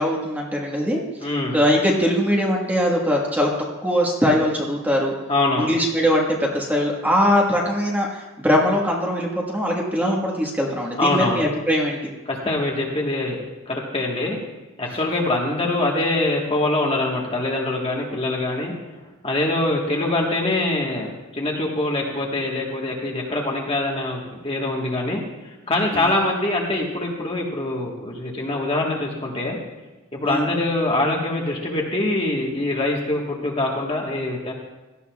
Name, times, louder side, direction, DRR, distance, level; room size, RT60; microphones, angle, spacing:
voice 1, 0.0-3.5 3.8-5.1 5.6-12.0 25.9-26.1 30.2-30.4, equal, 10° right, -2 dB, 1.4 m, -21 dB
voice 2, 1.2-1.6 5.3-5.7 11.0-11.4 12.3-14.4 14.8-18.7 19.2-25.2 25.7-29.6 30.1-34.5, left 2 dB, 25° left, -1 dB, 1.3 m, -24 dB
17.0 x 12.5 x 2.3 m, 1.1 s
head